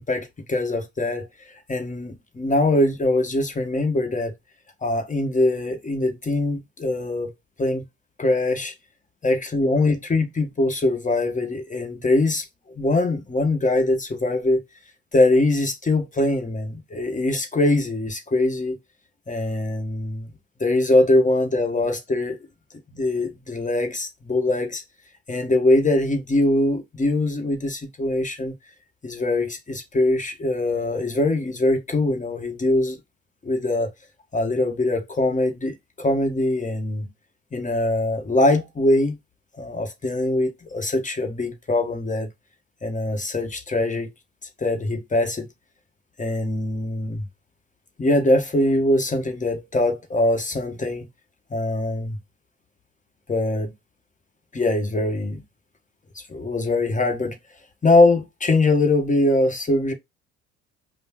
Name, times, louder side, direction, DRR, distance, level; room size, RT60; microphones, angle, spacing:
voice 1, 0.0-4.3 4.8-7.3 7.6-7.8 8.2-8.7 9.2-14.6 15.1-18.8 19.3-20.3 20.6-22.4 22.9-24.8 25.3-28.5 29.0-33.0 33.4-33.9 34.3-37.1 37.5-39.2 39.6-42.3 42.8-44.1 44.6-45.5 46.2-47.3 48.0-51.1 51.5-52.2 53.3-53.7 54.5-55.4 56.1-57.4 57.8-59.9, left 2 dB, 20° left, 1.3 m, -22 dB
5.0 x 2.2 x 2.9 m
hypercardioid pair, 55°, 34 cm